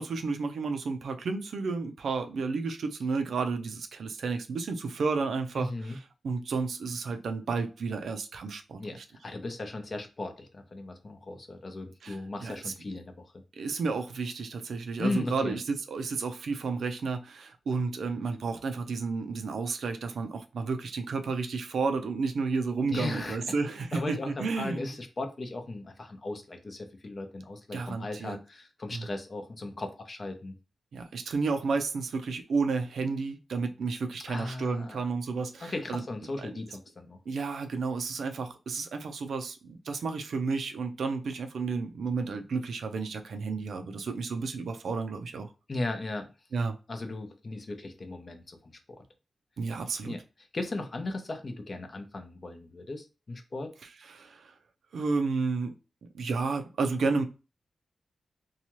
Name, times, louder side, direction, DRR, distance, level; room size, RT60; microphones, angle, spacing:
voice 1, 0.0-9.0 12.0-12.7 13.6-25.0 27.7-28.4 28.9-29.1 30.9-36.0 36.4-36.5 37.3-45.5 46.5-46.8 49.6-50.1 53.8-54.5 54.9-55.7 56.1-57.2, right 4 dB, 85° right, 0.5 m, -32 dB
voice 2, 5.6-6.0 8.8-9.0 9.2-13.4 15.0-15.6 22.9-23.4 23.9-30.6 34.3-35.0 35.6-37.2 45.7-46.3 46.9-48.6 50.0-50.2 50.5-53.7, left 2 dB, 40° left, 0.6 m, -37 dB
2.8 x 2.3 x 2.9 m
wide cardioid pair, 110°, 0 cm